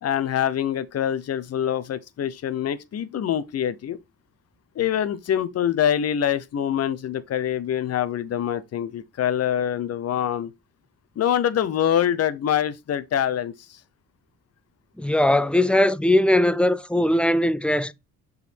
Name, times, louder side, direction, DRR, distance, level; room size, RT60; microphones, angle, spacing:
voice 1, 0.0-4.0 4.8-10.5 11.2-13.8, left 10 dB, 55° left, 0.8 m, -25 dB
voice 2, 15.0-17.9, left 1 dB, 5° left, 0.4 m, -20 dB
6.9 x 4.1 x 4.3 m
cardioid pair, 90°, 30 cm